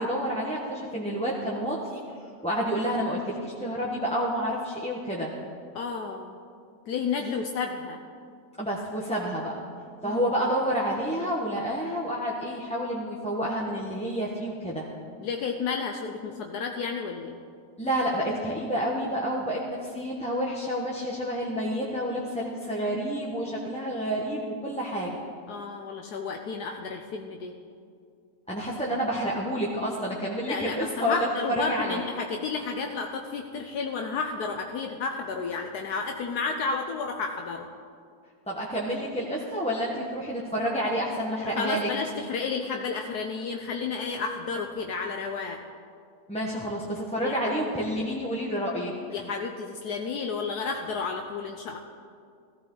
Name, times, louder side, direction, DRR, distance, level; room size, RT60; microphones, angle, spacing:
voice 1, 0.0-2.0 2.4-5.3 8.6-9.6 10.0-14.8 17.8-25.2 28.5-31.3 31.5-32.0 38.5-41.9 46.3-48.9, equal, 5° left, -5 dB, 1.0 m, -29 dB
voice 2, 5.7-6.4 6.9-8.0 10.0-10.2 15.2-17.4 25.5-27.5 30.5-37.7 41.4-45.6 47.2-47.5 49.1-51.8, left 5 dB, 70° left, 3 dB, 1.2 m, -32 dB
16.0 x 14.5 x 3.9 m, 2.3 s
omnidirectional pair, 1.8 m